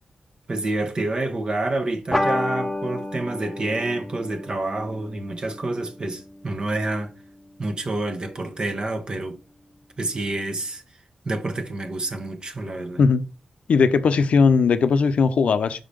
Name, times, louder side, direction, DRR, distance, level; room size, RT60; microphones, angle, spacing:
voice 1, 0.5-7.1 7.6-9.4 10.0-10.8 11.2-13.0, right 2 dB, 40° right, 1.1 m, -28 dB
sound 1, 2.1-7.0, left 1 dB, 5° left, 0.8 m, -30 dB
voice 2, 13.7-15.8, left 5 dB, 75° left, 0.6 m, -18 dB
5.4 x 3.8 x 5.0 m
wide cardioid pair, 110°, 2 cm